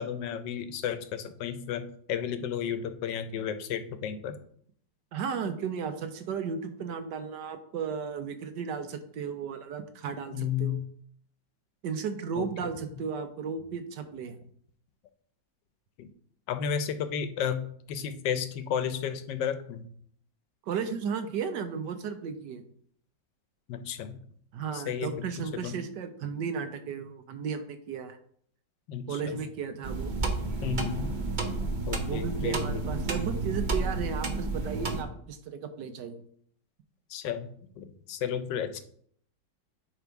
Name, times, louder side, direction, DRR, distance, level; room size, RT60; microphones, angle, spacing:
voice 1, 0.0-4.4 10.3-10.8 12.4-12.7 16.0-16.1 16.5-19.9 23.7-24.2 24.7-25.8 28.9-29.4 30.6-31.1 31.9-32.8 37.1-37.5 37.8-38.8, left 8 dB, 80° left, 10 dB, 1.3 m, -33 dB
voice 2, 5.1-10.8 11.8-14.4 20.7-22.6 24.5-28.2 29.1-30.1 32.0-36.2, right 6 dB, 75° right, 8 dB, 1.3 m, -34 dB
sound 1, 29.8-35.0, right 3 dB, 45° right, 0.6 m, -31 dB
10.0 x 3.5 x 4.6 m, 0.62 s
omnidirectional pair, 2.0 m